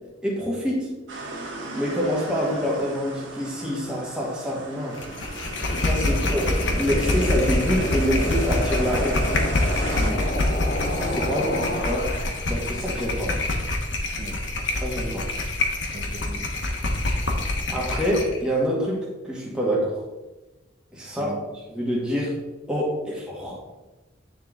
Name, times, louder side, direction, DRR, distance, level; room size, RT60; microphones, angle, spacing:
voice 1, 0.2-0.9 1.7-5.0 5.8-9.3 10.8-12.1 12.5-13.5 14.8-15.3 17.7-20.0 20.9-21.4 21.7-22.4 22.7-23.6, equal, 5° right, -4 dB, 1.5 m, -26 dB
sound 1, 1.1-10.1, right 2 dB, 85° right, 1.4 m, -37 dB
sound 2, 5.0-18.4, left 2 dB, 75° left, 1.0 m, -26 dB
sound 3, 5.3-12.7, left 1 dB, 45° left, 0.6 m, -31 dB
voice 2, 15.9-16.5 21.1-21.4, equal, 45° right, 4 dB, 0.9 m, -36 dB
9.5 x 3.8 x 3.6 m, 1.1 s
head